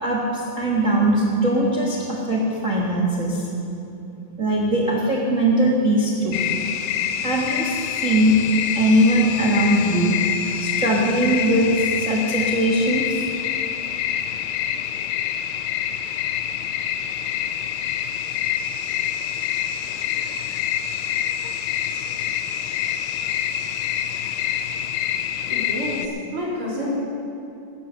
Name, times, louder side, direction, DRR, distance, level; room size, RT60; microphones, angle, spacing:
voice 1, 0.0-3.5 4.4-6.4 7.2-8.4 8.7-10.2 10.6-13.2, right 1 dB, 70° right, -2 dB, 0.7 m, -20 dB
sound 1, 6.3-26.1, left 10 dB, 80° left, 2.1 m, -26 dB
voice 2, 25.5-27.0, left 1 dB, 40° right, -6 dB, 4.0 m, -28 dB
15.5 x 9.7 x 6.7 m, 2.7 s
omnidirectional pair, 4.1 m